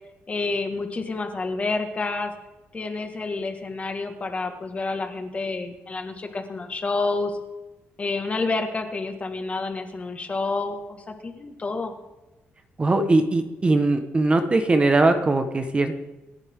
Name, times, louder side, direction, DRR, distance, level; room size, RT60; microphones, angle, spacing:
voice 1, 0.3-2.3 2.7-7.3 8.0-11.9, left 3 dB, 30° left, 6 dB, 1.9 m, -29 dB
voice 2, 12.8-16.0, right 2 dB, 25° right, 7 dB, 1.4 m, -20 dB
28.0 x 10.5 x 3.8 m, 1.1 s
cardioid pair, 120°, 4 cm